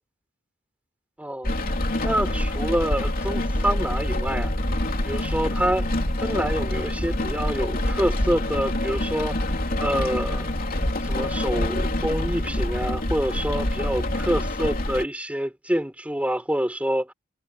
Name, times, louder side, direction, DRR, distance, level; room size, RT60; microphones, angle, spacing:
voice 1, 1.2-1.5 2.0-4.5 5.0-5.9 6.2-9.4 9.8-10.5 11.0-17.1, equal, 5° right, 4.4 m, -27 dB
Rain, 1.4-15.0, left 1 dB, 45° left, 3.2 m, -26 dB
head